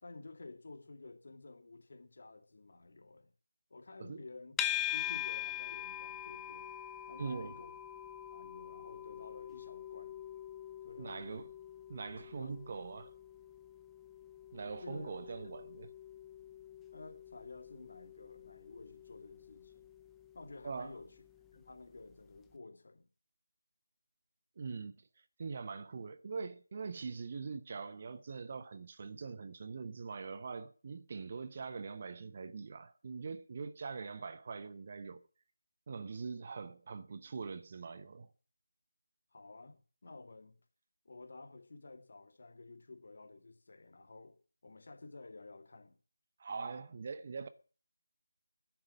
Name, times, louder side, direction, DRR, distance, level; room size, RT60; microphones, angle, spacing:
voice 1, 0.0-3.3 3.7-4.6 4.9-6.7 7.1-7.7 8.3-10.2 10.8-11.3 12.3-12.7 14.8-15.3 16.9-19.9 20.3-21.1 21.5-23.1 39.3-40.6 41.0-44.4 44.6-45.9, left 3 dB, 45° left, 2.3 m, -52 dB
sound 1, 4.6-21.8, left 11 dB, 5° left, 0.6 m, -44 dB
voice 2, 7.2-7.6 11.0-11.5 11.9-13.1 14.5-15.9 20.6-20.9 24.6-25.0 25.4-35.2 35.9-38.3 46.4-47.5, right 5 dB, 35° right, 0.9 m, -43 dB
10.5 x 8.5 x 8.5 m
figure-of-eight pair, 160°, 0 cm